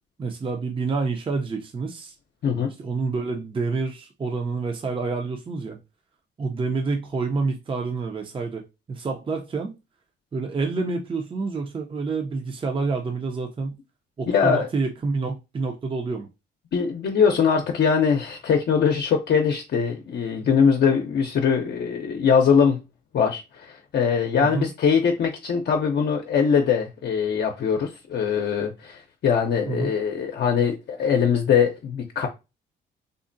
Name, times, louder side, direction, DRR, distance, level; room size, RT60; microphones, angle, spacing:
voice 1, 0.2-2.1 2.8-5.8 6.4-9.8 10.3-13.7 14.2-16.3 24.4-24.7 29.7-29.9, right 4 dB, 25° right, 0.5 m, -28 dB
voice 2, 14.3-14.7 16.7-22.8 23.1-32.3, left 6 dB, 60° left, 0.6 m, -22 dB
3.7 x 2.1 x 2.5 m
cardioid pair, 90°, 20 cm